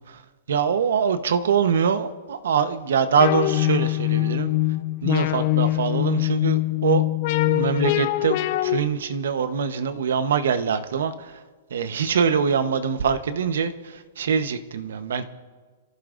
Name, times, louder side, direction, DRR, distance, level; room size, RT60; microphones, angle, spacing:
voice 1, 0.5-4.5 5.0-7.0 7.5-11.4 11.7-15.2, right 6 dB, 75° right, 10 dB, 1.0 m, -24 dB
sound 1, 3.2-8.8, left 16 dB, 30° left, 0.4 m, -23 dB
29.0 x 14.5 x 2.6 m, 1.5 s
hypercardioid pair, 175°, 0 cm